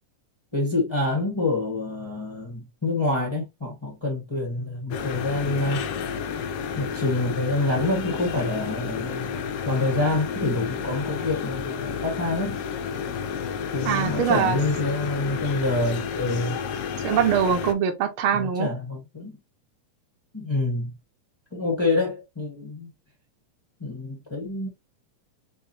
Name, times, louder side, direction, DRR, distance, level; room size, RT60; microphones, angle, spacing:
voice 1, 0.5-5.9 6.8-12.6 13.7-16.6 18.3-19.4 20.3-20.9 21.5-22.9 23.8-24.7, left 2 dB, 40° left, 0.4 m, -27 dB
sound 1, 4.9-17.7, left 7 dB, 85° left, 1.3 m, -31 dB
voice 2, 13.8-14.6 17.0-18.7, right 8 dB, 65° right, 1.3 m, -23 dB
4.6 x 3.6 x 2.8 m
omnidirectional pair, 3.4 m